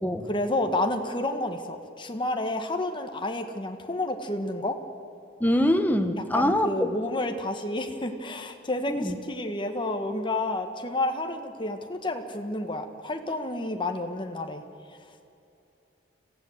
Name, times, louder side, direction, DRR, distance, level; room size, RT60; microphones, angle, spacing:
voice 1, 0.3-4.8 6.2-14.6, left 2 dB, 25° left, 5 dB, 1.4 m, -30 dB
voice 2, 5.4-6.9 8.9-9.2, left 1 dB, 10° left, 8 dB, 1.1 m, -24 dB
26.5 x 15.5 x 7.9 m, 2.7 s
head